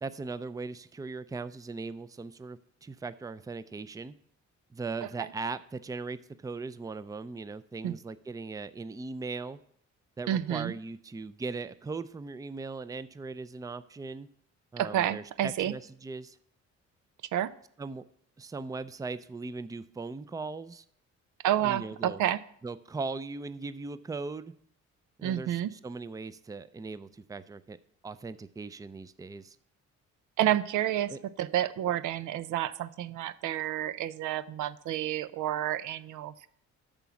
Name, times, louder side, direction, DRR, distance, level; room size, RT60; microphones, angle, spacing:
voice 1, 0.0-4.1 4.7-9.6 10.2-14.3 14.7-16.4 17.8-18.0 18.4-20.8 21.6-22.2 22.6-24.5 25.2-27.8 28.0-29.6 31.1-31.2, right 3 dB, 10° right, 15 dB, 0.4 m, -39 dB
voice 2, 10.3-10.7 14.8-15.7 17.3-17.5 21.4-22.4 25.2-25.7 30.4-36.5, right 12 dB, 80° right, 15 dB, 0.6 m, -30 dB
8.9 x 6.1 x 7.0 m, 0.64 s
cardioid pair, 90°, 30 cm